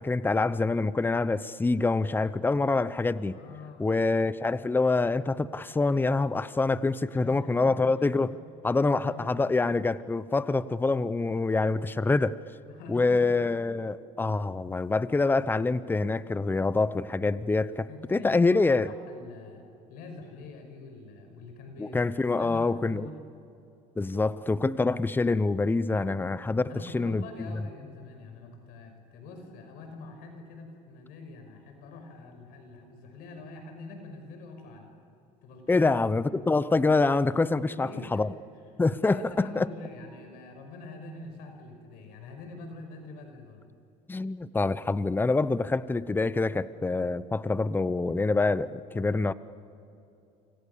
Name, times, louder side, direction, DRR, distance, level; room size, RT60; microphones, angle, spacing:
voice 1, 0.0-3.4 3.8-8.3 8.6-12.4 12.9-18.9 21.8-23.1 24.0-27.5 35.7-38.3 38.8-39.7 44.1-49.3, left 3 dB, 15° left, 16 dB, 0.9 m, -26 dB
voice 2, 3.3-3.9 7.1-7.9 8.3-8.4 8.7-9.5 12.7-13.3 17.9-22.0 22.4-23.2 26.7-34.9 35.4-35.9 37.7-38.2 39.0-43.6, left 3 dB, 75° left, 5 dB, 5.7 m, -45 dB
29.0 x 26.0 x 7.0 m, 2.7 s
supercardioid pair, 100°, 16 cm